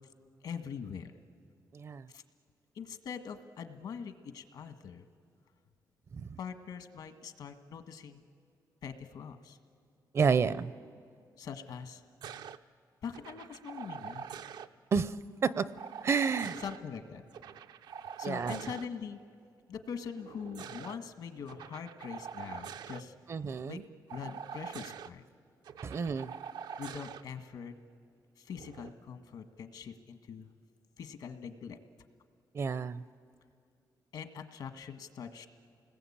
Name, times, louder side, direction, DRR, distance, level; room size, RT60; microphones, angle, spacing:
voice 1, 0.4-1.1 2.1-2.2 2.7-5.1 6.4-8.2 8.8-9.6 11.4-12.0 13.0-14.3 16.6-17.2 18.2-19.2 19.7-23.1 23.6-23.8 24.1-25.2 26.8-27.7 28.4-30.5 31.0-31.8 34.1-35.5, left 7 dB, 70° left, 1.6 m, -43 dB
voice 2, 1.7-2.1 6.1-6.4 10.1-10.7 14.9-15.2 15.4-15.7 16.0-16.6 18.2-18.7 23.3-23.8 25.8-26.3 32.5-33.0, right 5 dB, 40° right, 0.6 m, -30 dB
sound 1, 12.2-12.6 13.1-14.7 15.8-16.8 17.3-18.9 20.2-21.0 21.5-23.0 24.1-25.1 25.6-27.2 28.5-28.9, right 7 dB, 85° right, 0.7 m, -44 dB
29.0 x 20.0 x 8.7 m
wide cardioid pair, 150°, 7 cm